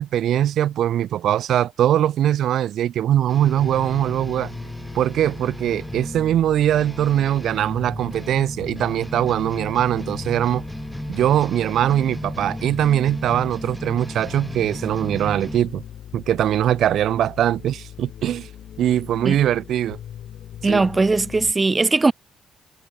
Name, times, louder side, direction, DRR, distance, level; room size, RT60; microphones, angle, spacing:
voice 1, 0.0-4.5 4.9-10.6 11.1-15.8 16.1-18.5 18.8-20.0 20.7-20.8, right 11 dB, 75° right, 0.5 m, -21 dB
sound 1, 3.3-15.6, equal, ahead, 3.2 m, -35 dB
sound 2, 3.4-21.5, left 10 dB, 70° left, 7.4 m, -40 dB
voice 2, 20.6-22.1, right 3 dB, 25° right, 0.9 m, -19 dB
cardioid pair, 90°, 0 cm